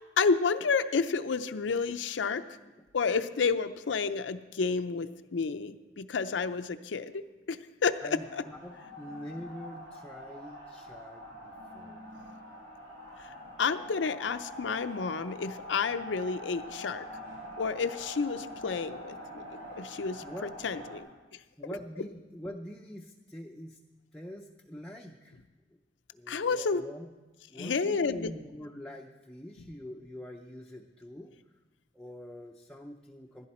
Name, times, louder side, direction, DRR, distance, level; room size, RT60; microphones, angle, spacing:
voice 1, 0.2-2.4 2.9-7.2 7.5-8.4 13.2-13.3 13.6-17.1 17.6-19.4 19.8-21.1 26.3-26.8 27.6-28.3, left 5 dB, 80° left, 10 dB, 0.5 m, -30 dB
voice 2, 8.0-12.0 20.2-20.5 21.6-23.8 24.1-25.4 26.1-27.1 27.5-31.3 31.9-33.5, equal, 5° left, 0 dB, 0.5 m, -44 dB
sound 1, 8.0-21.0, equal, 85° right, 3.2 m, -45 dB
15.0 x 10.5 x 4.3 m, 1.2 s
head